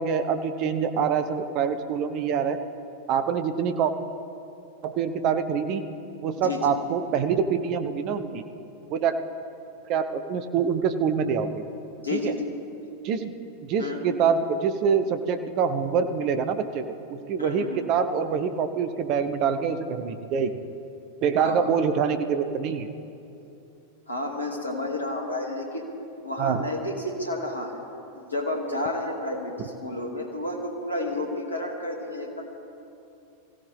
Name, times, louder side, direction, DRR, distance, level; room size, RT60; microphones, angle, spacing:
voice 1, 0.0-2.6 3.1-3.9 4.8-5.9 6.2-8.4 8.9-9.2 9.9-11.6 12.1-12.3 13.0-13.3 13.7-16.8 17.3-20.5 21.2-22.9 26.4-26.6, right 6 dB, 40° right, 9 dB, 0.9 m, -25 dB
voice 2, 6.4-6.8 12.0-12.4 13.8-14.0 17.4-17.8 21.4-21.7 24.1-25.9 26.2-27.8 28.1-32.4, left 2 dB, 80° left, 1 dB, 2.4 m, -31 dB
23.5 x 16.0 x 3.5 m, 2.8 s
figure-of-eight pair, 90°, 0 cm